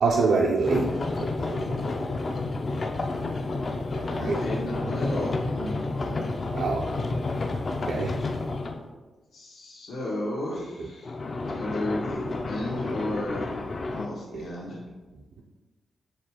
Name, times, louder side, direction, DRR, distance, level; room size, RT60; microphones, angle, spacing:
voice 1, 0.0-0.9 1.2-1.4 3.9-4.4 6.5-6.9 7.8-8.1 14.3-14.4, right 4 dB, 80° right, -1 dB, 0.4 m, -25 dB
sound 1, 0.6-8.8 11.0-14.1, left 3 dB, 40° left, 0.3 m, -30 dB
voice 2, 4.1-5.7 9.3-11.1 11.5-12.2 12.5-13.5 13.9-14.8, left 1 dB, 85° left, -5 dB, 1.1 m, -33 dB
6.4 x 2.4 x 2.9 m, 1.2 s
wide cardioid pair, 130°, 0 cm